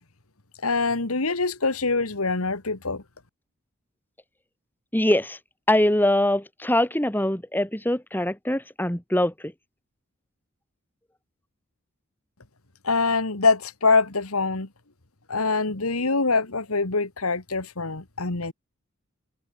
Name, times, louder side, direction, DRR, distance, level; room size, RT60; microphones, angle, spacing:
voice 1, 0.6-3.0 12.8-14.7 15.3-18.5, left 3 dB, 85° left, 2.2 m, -24 dB
voice 2, 4.9-5.4 5.7-9.5, left 1 dB, 10° left, 4.7 m, -23 dB
head